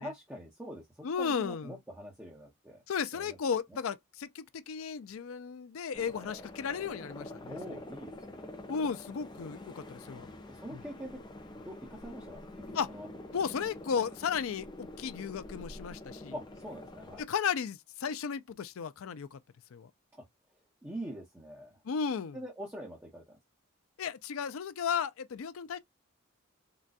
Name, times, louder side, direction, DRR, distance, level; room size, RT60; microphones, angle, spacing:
voice 1, 0.0-2.8 3.1-3.4 7.5-8.4 10.5-11.2 11.6-12.5 12.9-13.1 13.3-13.4 16.3-17.2 20.2-20.3 20.8-21.7 22.3-23.4, equal, 10° right, 0.8 m, -44 dB
voice 2, 1.0-1.8 2.9-7.6 8.7-10.3 10.7-10.8 12.7-12.9 13.3-16.3 17.2-19.4 19.7-19.9 21.8-22.4 24.0-25.8, left 6 dB, 75° left, 0.4 m, -34 dB
sound 1, 5.9-17.2, left 1 dB, 20° left, 0.5 m, -47 dB
3.9 x 2.3 x 2.3 m
head